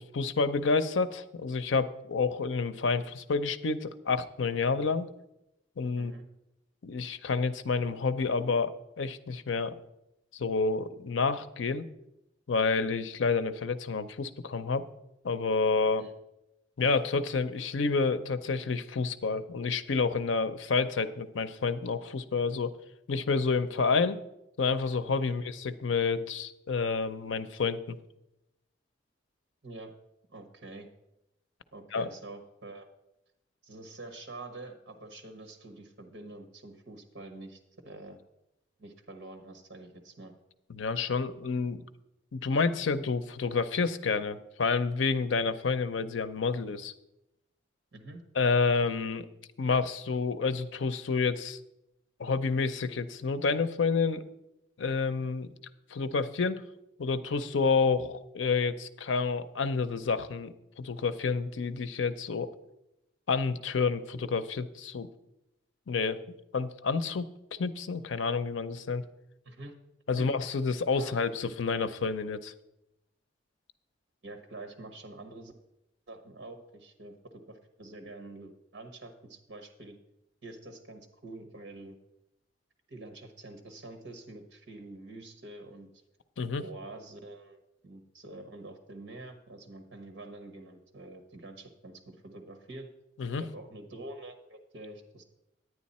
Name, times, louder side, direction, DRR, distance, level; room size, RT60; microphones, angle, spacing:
voice 1, 0.0-5.1 5.8-6.1 6.8-9.8 10.3-11.9 12.5-14.9 15.2-16.1 16.8-22.7 23.1-24.2 24.6-28.0 31.9-32.1 40.7-41.8 42.3-46.9 48.4-49.3 49.6-51.6 52.2-54.2 54.8-55.5 55.9-56.6 57.0-62.5 63.3-65.1 65.9-66.2 66.5-69.0 70.1-72.5 86.4-86.6 93.2-93.4, left 4 dB, 80° left, 12 dB, 0.6 m, -29 dB
voice 2, 6.0-6.3 16.0-16.1 25.3-25.5 29.6-29.9 30.3-30.9 31.7-32.9 33.6-38.2 38.8-40.3 47.9-48.2 69.4-69.7 70.1-70.3 71.0-71.1 74.2-75.5 76.1-80.0 80.4-82.0 82.9-85.9 86.6-92.9 93.4-95.2, right 2 dB, 60° right, 6 dB, 1.2 m, -46 dB
9.8 x 9.5 x 4.2 m, 0.87 s
head